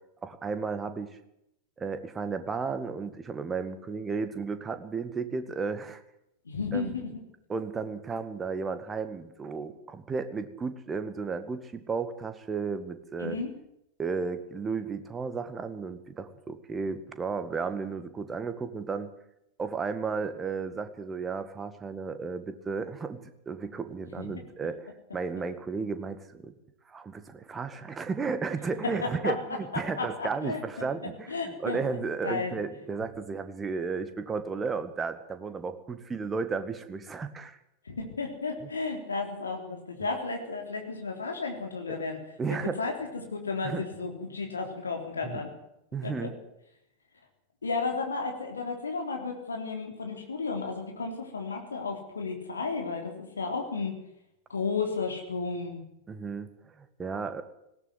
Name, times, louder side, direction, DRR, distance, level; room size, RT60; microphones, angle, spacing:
voice 1, 0.2-1.2 1.8-6.0 6.7-6.9 7.5-13.4 14.0-19.1 19.6-23.2 23.5-26.5 26.9-37.6 38.6-38.7 41.9-42.0 42.4-42.8 43.6-43.8 45.2-45.4 45.9-46.4 56.1-57.4, right 5 dB, 15° right, 10 dB, 1.9 m, -34 dB
voice 2, 6.5-7.1 13.2-13.5 28.8-29.3 30.0-30.9 31.3-31.8 32.2-32.5 37.9-42.2 42.8-42.9 43.3-45.5 46.0-46.3 47.6-53.9 54.5-55.8, left 4 dB, 75° left, 3 dB, 3.6 m, -33 dB
19.5 x 17.0 x 8.0 m, 0.81 s
figure-of-eight pair, 90°, 0 cm